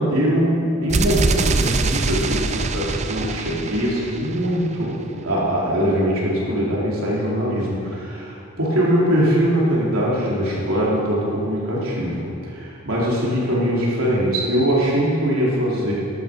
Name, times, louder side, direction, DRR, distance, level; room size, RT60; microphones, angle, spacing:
voice 1, 0.0-15.9, equal, 85° right, -5 dB, 3.8 m, -22 dB
sound 1, 0.9-4.8, right 3 dB, 30° right, 0.6 m, -23 dB
14.5 x 11.5 x 5.3 m, 2.5 s
head